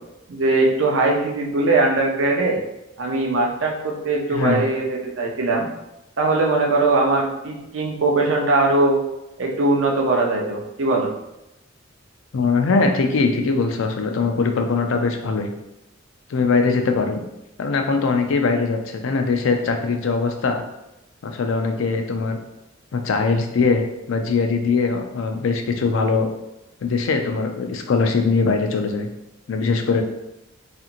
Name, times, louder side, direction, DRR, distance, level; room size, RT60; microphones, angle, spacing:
voice 1, 0.3-2.6 3.0-5.7 6.2-9.0 9.4-11.1, right 2 dB, 75° right, 0 dB, 0.6 m, -20 dB
voice 2, 4.3-4.6 12.3-15.5 16.3-17.2 17.6-20.6 21.2-22.4 22.9-23.8 24.1-26.3 26.8-29.1 29.5-30.0, left 4 dB, 75° left, 4 dB, 0.4 m, -21 dB
2.9 x 2.5 x 2.5 m, 0.90 s
head